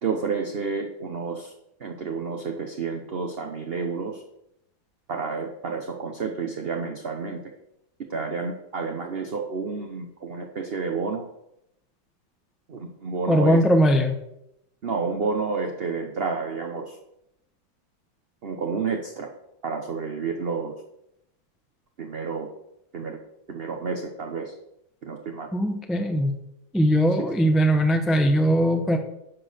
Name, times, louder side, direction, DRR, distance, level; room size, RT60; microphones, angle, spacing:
voice 1, 0.0-1.5 1.8-4.2 5.1-7.5 8.1-11.2 12.7-13.6 14.8-17.0 18.4-19.3 19.6-20.7 22.0-22.5 22.9-23.2 23.5-24.5 25.0-25.5, right 5 dB, 45° right, 3 dB, 0.9 m, -30 dB
voice 2, 13.3-14.2 25.5-26.3 26.7-29.0, equal, ahead, 6 dB, 0.4 m, -20 dB
10.5 x 6.1 x 6.6 m, 0.82 s
omnidirectional pair, 2.0 m